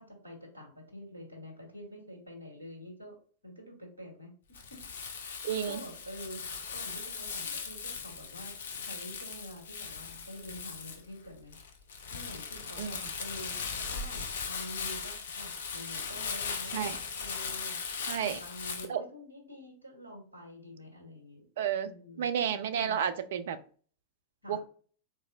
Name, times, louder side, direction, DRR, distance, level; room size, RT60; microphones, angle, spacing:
voice 1, 0.0-3.1 3.4-4.8 5.2-8.5 8.8-11.6 12.1-13.6 13.9-17.8 18.1-21.5 21.8-22.3 22.7-23.0 24.4-24.6, equal, 85° left, 1 dB, 1.4 m, -47 dB
Crumpling crinkling, 4.5-18.9, left 5 dB, 65° left, 0.5 m, -39 dB
voice 2, 5.4-5.8 12.8-13.0 16.7-17.0 18.1-18.4 18.9-19.0 21.6-21.9 22.2-23.6 24.5-24.6, right 8 dB, 60° right, 10 dB, 0.3 m, -31 dB
4.1 x 2.5 x 2.4 m, 0.43 s
figure-of-eight pair, 90°, 0 cm